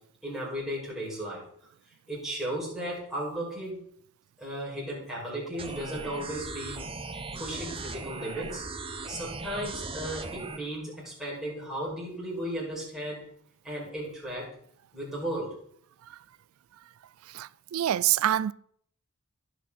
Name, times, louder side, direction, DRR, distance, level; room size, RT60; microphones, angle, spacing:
voice 1, 0.2-1.4 2.1-3.8 4.4-6.8 7.4-8.8 9.1-13.3 13.6-14.5 14.9-15.6, right 1 dB, ahead, 6.0 m, -35 dB
sound 1, 5.6-10.6, right 3 dB, 25° right, 0.9 m, -38 dB
voice 2, 17.2-18.5, right 12 dB, 65° right, 0.3 m, -27 dB
17.5 x 6.2 x 4.2 m
head